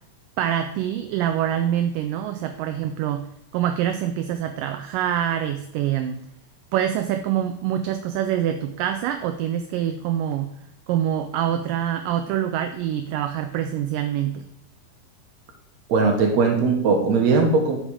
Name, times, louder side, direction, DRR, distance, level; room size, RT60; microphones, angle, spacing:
voice 1, 0.4-3.3 3.5-6.2 6.7-10.5 10.9-14.4, right 10 dB, 80° right, 8 dB, 2.0 m, -25 dB
voice 2, 15.9-17.8, right 4 dB, 60° right, 3 dB, 2.3 m, -19 dB
11.5 x 5.1 x 4.9 m, 0.72 s
omnidirectional pair, 4.1 m